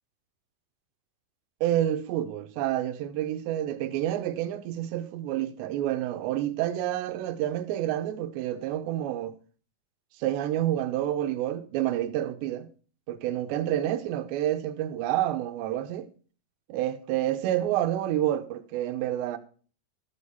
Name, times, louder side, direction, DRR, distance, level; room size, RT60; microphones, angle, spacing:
voice 1, 1.6-9.3 10.2-12.7 13.1-16.1 16.7-19.4, right 12 dB, 85° right, 3.0 m, -28 dB
13.0 x 6.6 x 5.5 m
omnidirectional pair, 5.0 m